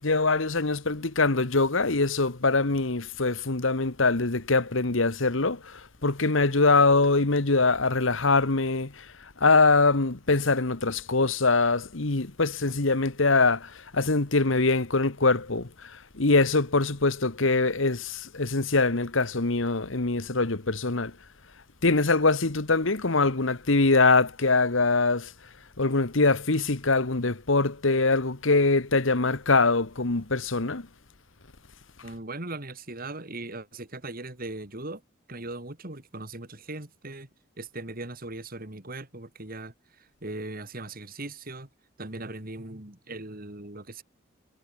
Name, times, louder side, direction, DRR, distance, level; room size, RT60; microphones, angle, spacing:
voice 1, 0.0-9.1 9.4-21.1 21.8-25.3 25.8-30.9, left 3 dB, 65° left, 1.5 m, -23 dB
voice 2, 32.0-35.0 35.3-37.3 37.6-41.7 42.0-44.0, right 2 dB, 45° right, 2.9 m, -39 dB
head